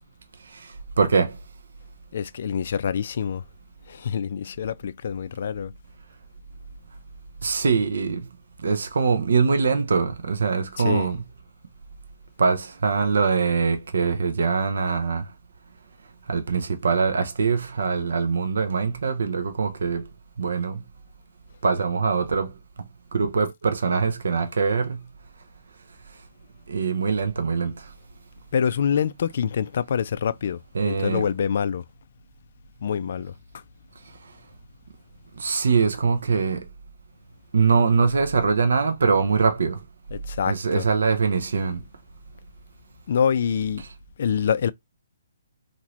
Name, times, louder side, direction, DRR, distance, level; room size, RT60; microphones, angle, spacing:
voice 1, 1.0-1.4 7.4-8.2 8.6-11.2 12.4-15.2 16.3-20.0 20.4-20.8 21.6-22.5 23.1-25.0 26.7-27.7 30.7-31.2 35.4-36.6 37.5-39.8 40.5-41.8, right 5 dB, 70° right, 0.5 m, -23 dB
voice 2, 2.1-3.4 3.9-5.7 10.8-11.1 28.5-31.8 32.8-33.6 40.1-40.8 43.1-43.9 44.2-44.7, left 7 dB, 60° left, 0.3 m, -26 dB
2.8 x 2.5 x 3.0 m
hypercardioid pair, 145°, 0 cm